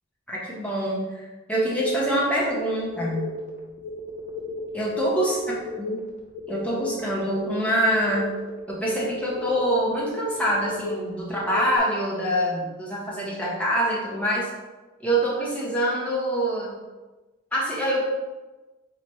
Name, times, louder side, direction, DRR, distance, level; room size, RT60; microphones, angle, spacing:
voice 1, 0.3-3.3 4.7-5.4 6.5-8.3 8.7-14.5 15.0-16.8 17.5-18.0, right 1 dB, 5° left, -5 dB, 0.9 m, -25 dB
sound 1, 1.8-11.8, left 2 dB, 35° left, 0.7 m, -35 dB
4.0 x 3.1 x 4.2 m, 1.2 s
head